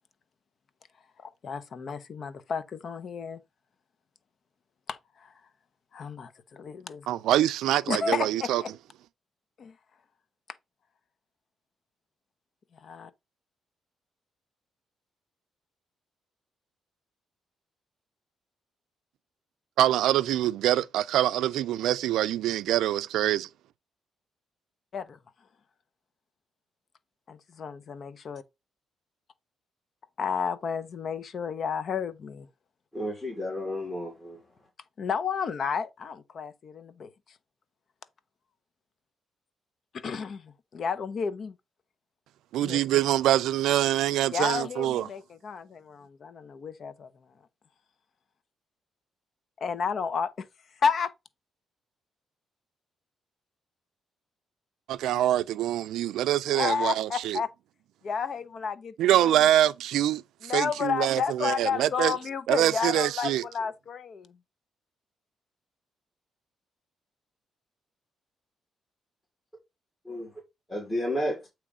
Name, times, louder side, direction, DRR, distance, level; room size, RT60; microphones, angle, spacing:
voice 1, 1.2-3.4 4.9-5.3 5.9-7.1 7.9-8.7 9.6-9.7 12.7-13.1 24.9-25.2 27.3-28.4 30.2-32.5 35.0-37.1 39.9-41.5 42.6-42.8 44.3-47.1 49.6-50.4 50.8-51.1 56.5-57.5 58.0-58.9 59.2-59.5 60.4-64.4, left 6 dB, 50° left, 0.8 m, -31 dB
voice 2, 7.1-8.6 19.8-23.5 42.5-45.1 54.9-57.4 59.0-62.2 62.5-63.4, right 13 dB, 90° right, 0.4 m, -25 dB
voice 3, 32.9-34.4 70.0-70.3 70.7-71.5, left 1 dB, 15° left, 2.8 m, -32 dB
8.4 x 3.1 x 4.9 m
cardioid pair, 100°, 0 cm